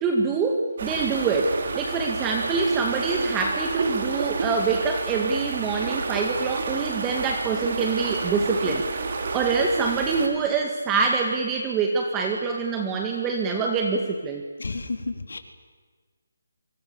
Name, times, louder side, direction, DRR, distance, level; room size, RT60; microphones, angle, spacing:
voice 1, 0.0-8.8 9.3-14.4, right 4 dB, 15° right, 2 dB, 2.0 m, -25 dB
sound 1, 0.8-10.3, right 3 dB, 45° right, 4.7 m, -30 dB
voice 2, 14.6-15.4, left 3 dB, 80° left, 6 dB, 4.2 m, -31 dB
28.5 x 25.0 x 7.1 m, 1.4 s
hypercardioid pair, 165°, 0 cm